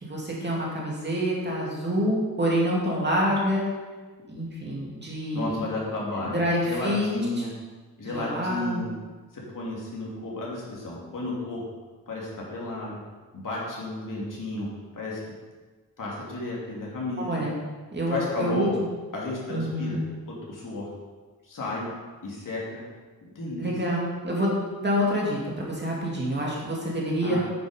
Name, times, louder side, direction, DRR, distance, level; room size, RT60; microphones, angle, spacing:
voice 1, 0.0-3.6 4.3-5.6 6.1-7.1 7.4-7.5 8.0-8.8 17.2-17.6 17.9-18.7 19.5-20.0 23.6-27.4, equal, 30° right, -4 dB, 2.4 m, -27 dB
voice 2, 5.3-7.5 8.0-8.9 9.3-11.6 12.1-13.0 13.3-14.7 14.9-15.2 16.0-17.4 18.1-18.7 19.1-20.0 20.3-20.9 21.5-21.9 22.2-22.8 23.2-23.7 27.2-27.4, left 2 dB, 60° left, -4 dB, 2.8 m, -32 dB
9.3 x 8.3 x 5.1 m, 1.3 s
wide cardioid pair, 175°, 36 cm